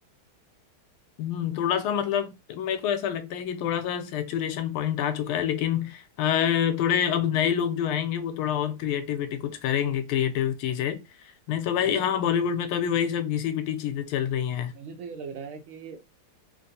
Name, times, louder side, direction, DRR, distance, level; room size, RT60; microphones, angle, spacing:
voice 1, 1.2-11.0 11.5-14.7, left 9 dB, 85° left, 1.5 m, -27 dB
voice 2, 11.8-12.2 14.7-16.0, right 5 dB, 75° right, 1.5 m, -39 dB
3.7 x 2.6 x 2.7 m
omnidirectional pair, 2.3 m